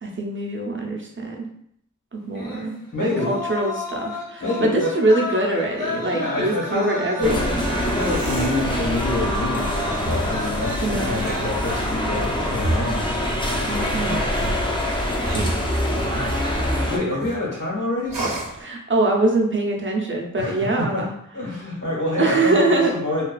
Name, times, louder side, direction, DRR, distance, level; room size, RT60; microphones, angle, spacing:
voice 1, 0.0-1.4 2.1-2.7 3.0-7.7 10.8-11.1 13.7-14.2 18.6-21.1 22.2-22.9, right 2 dB, 35° right, 0 dB, 0.5 m, -23 dB
sound 1, 2.3-11.9, left 2 dB, 85° left, 0.6 m, -33 dB
voice 2, 2.9-3.3 4.4-4.9 5.8-7.5 7.8-13.0 13.9-14.3 16.1-16.6 16.9-18.2 20.4-21.1 21.3-23.2, left 2 dB, 65° left, -5 dB, 1.2 m, -27 dB
sound 2, 7.2-17.0, left 1 dB, 15° left, 0.4 m, -25 dB
sound 3, 7.9-8.6 10.0-10.4 11.0-11.6 12.5-13.1 14.3-16.2 16.8-17.4 18.1-18.6, right 1 dB, 75° right, 0.6 m, -29 dB
2.4 x 2.3 x 2.3 m, 0.70 s
wide cardioid pair, 50°, 34 cm